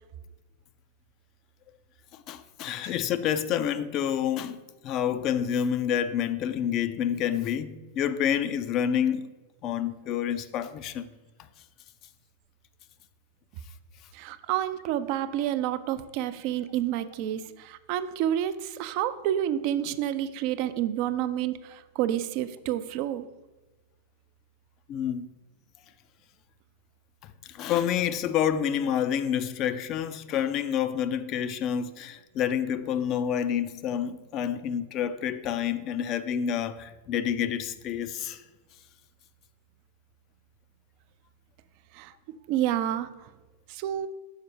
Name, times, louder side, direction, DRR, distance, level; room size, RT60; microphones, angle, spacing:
voice 1, 2.1-9.3 9.6-11.1 24.9-25.3 27.2-38.4, left 9 dB, 35° left, 0.4 m, -28 dB
voice 2, 14.1-23.3 41.9-42.1 42.5-43.3 43.7-44.1, right 11 dB, 45° right, 0.3 m, -29 dB
6.5 x 4.3 x 4.8 m
figure-of-eight pair, 90°, 0 cm